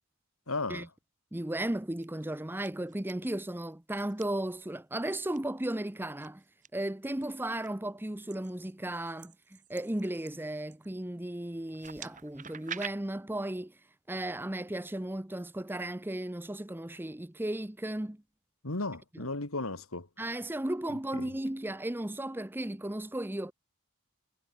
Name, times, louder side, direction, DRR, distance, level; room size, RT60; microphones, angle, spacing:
voice 1, 0.5-0.9 18.6-20.1, left 2 dB, 70° left, 2.5 m, -34 dB
voice 2, 1.3-6.4 6.7-13.8 14.1-18.2 19.1-19.3 20.2-23.5, right 1 dB, 10° right, 0.7 m, -35 dB
One Minute of Folly, 1.8-2.3 2.6-3.1 4.0-4.2 5.1-5.4 6.2-6.7 7.2-7.7 8.3-11.0 11.7-12.9, right 8 dB, 35° right, 1.8 m, -46 dB
head